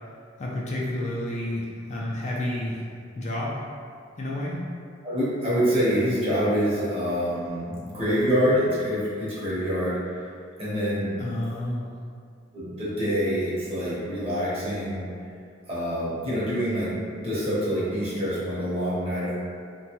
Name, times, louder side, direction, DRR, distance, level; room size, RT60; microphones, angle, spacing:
voice 1, 0.4-2.8 3.1-3.6 4.2-4.6 11.2-11.9, left 1 dB, 35° left, -5 dB, 0.4 m, -30 dB
voice 2, 5.0-10.0 10.6-11.2 12.5-15.1 15.7-19.3, equal, 30° right, -9 dB, 0.8 m, -26 dB
3.0 x 2.2 x 2.9 m, 2.3 s
head